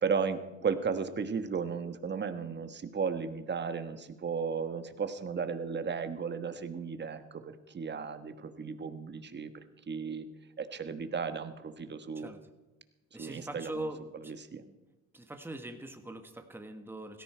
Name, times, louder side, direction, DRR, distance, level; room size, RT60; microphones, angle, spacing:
voice 1, 0.0-9.5 9.9-10.3 10.6-12.3 13.2-13.9 14.3-14.6, right 6 dB, 35° right, 9 dB, 1.3 m, -35 dB
voice 2, 13.1-14.7 15.1-17.2, right 1 dB, 5° right, 6 dB, 1.5 m, -42 dB
17.0 x 14.0 x 4.5 m, 1.1 s
cardioid pair, 90°, 30 cm